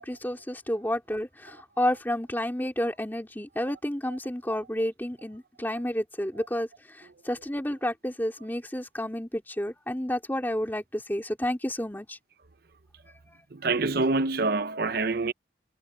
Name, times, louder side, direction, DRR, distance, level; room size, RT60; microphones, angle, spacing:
voice 1, 0.0-12.2 13.3-13.4, left 1 dB, 10° left, 3.0 m, -30 dB
voice 2, 13.5-15.3, right 3 dB, 55° right, 0.7 m, -26 dB
head